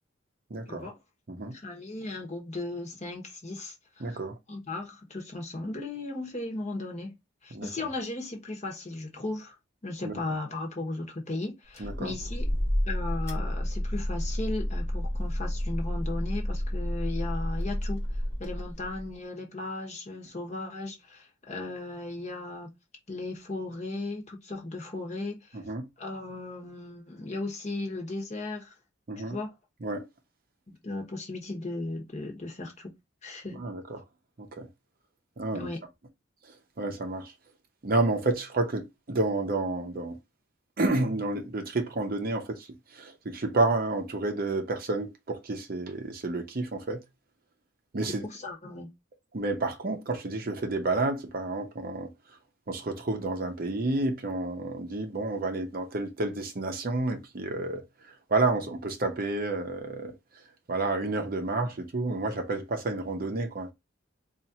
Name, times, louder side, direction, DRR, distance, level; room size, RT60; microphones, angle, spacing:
voice 1, 0.5-0.9 1.3-1.5 4.0-4.4 7.5-7.7 10.0-10.2 11.8-12.1 25.5-25.9 29.1-29.4 29.8-30.1 33.6-34.0 34.4-34.7 35.4-35.7 36.8-37.3 37.8-40.2 40.8-42.7 42.9-47.0 47.9-48.2 49.3-52.1 52.7-57.8 58.3-60.1 60.7-63.7, right 2 dB, 45° right, 0.6 m, -30 dB
voice 2, 1.5-4.2 4.5-7.1 7.4-9.6 9.8-12.4 12.9-18.0 18.4-22.7 23.1-25.6 26.0-28.7 29.2-29.5 30.7-32.9 33.2-33.6 35.5-35.8 48.2-48.9, left 2 dB, 35° left, 1.0 m, -36 dB
sound 1, 11.7-19.1, equal, 15° left, 1.1 m, -30 dB
4.2 x 2.5 x 2.7 m
head